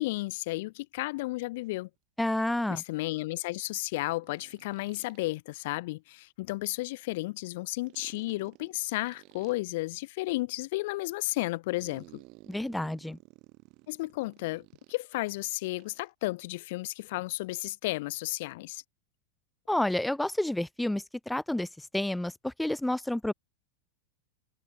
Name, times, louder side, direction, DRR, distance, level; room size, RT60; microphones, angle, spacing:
voice 1, 0.0-1.9 2.7-12.2 13.9-18.8, left 20 dB, 65° left, 0.5 m, -33 dB
sound 1, 1.6-1.7 4.2-5.3 7.8-9.6 11.8-15.2 15.8-16.1, right 25 dB, 50° right, 3.0 m, -55 dB
voice 2, 2.2-2.8 12.5-13.2 19.7-21.7 21.9-23.3, left 1 dB, 5° left, 0.4 m, -29 dB
supercardioid pair, 140°, 0 cm